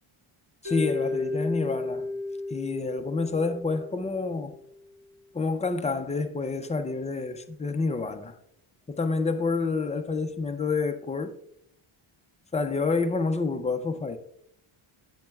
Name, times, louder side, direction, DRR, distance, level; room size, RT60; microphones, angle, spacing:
voice 1, 0.6-2.1 2.5-4.6 5.3-8.4 8.9-11.3 12.5-14.2, left 4 dB, 15° left, 0.3 m, -28 dB
Mallet percussion, 0.6-4.8, left 2 dB, 35° right, 2.2 m, -33 dB
10.5 x 7.8 x 2.3 m
cardioid pair, 155°, 50 cm